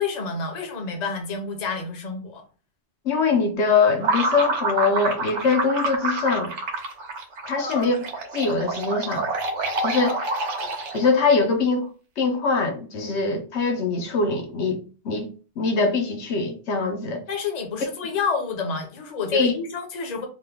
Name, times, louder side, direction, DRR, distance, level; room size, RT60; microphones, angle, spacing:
voice 1, 0.0-2.4 7.6-7.9 10.1-10.2 17.3-20.3, left 5 dB, 45° left, 0.7 m, -29 dB
voice 2, 3.0-6.5 7.4-8.0 8.3-9.3 9.8-10.2 10.9-11.9 12.2-14.8 15.0-15.3 15.6-17.2 19.3-19.5, left 4 dB, 75° left, 0.9 m, -22 dB
sound 1, 4.0-11.2, right 2 dB, 85° right, 1.0 m, -27 dB
2.9 x 2.1 x 3.4 m
omnidirectional pair, 1.2 m